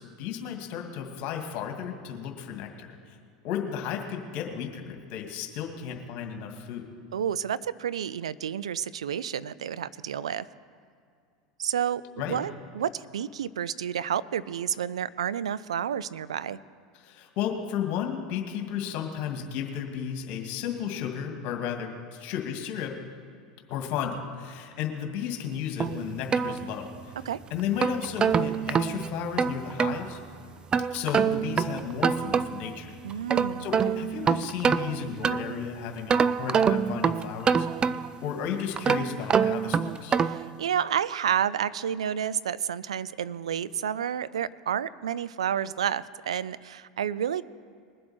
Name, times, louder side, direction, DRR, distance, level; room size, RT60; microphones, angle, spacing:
voice 1, 0.0-3.2 3.4-6.9 12.2-12.4 17.0-23.0 23.7-26.9 27.5-30.2 30.9-32.9 33.6-38.0 38.2-40.2, left 8 dB, 55° left, 3 dB, 2.2 m, -34 dB
voice 2, 7.1-10.5 11.6-12.0 12.3-16.6 27.3-27.4 33.0-34.0 40.2-47.4, right 9 dB, 85° right, 17 dB, 0.5 m, -30 dB
sound 1, 25.8-27.1 27.6-30.0 30.7-32.7 33.1-35.6 36.1-38.3 38.8-40.5, right 6 dB, 25° right, 0.5 m, -26 dB
21.5 x 7.7 x 4.4 m, 2.3 s
hypercardioid pair, 90°, 3 cm